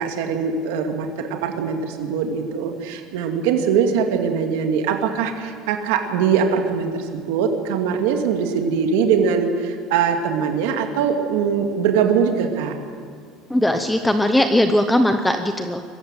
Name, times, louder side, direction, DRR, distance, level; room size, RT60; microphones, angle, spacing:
voice 1, 0.0-12.7, right 6 dB, 85° right, 4 dB, 2.5 m, -22 dB
voice 2, 13.5-15.8, left 1 dB, 5° left, 7 dB, 0.7 m, -19 dB
23.0 x 14.5 x 9.0 m, 2.1 s
cardioid pair, 165°, 0 cm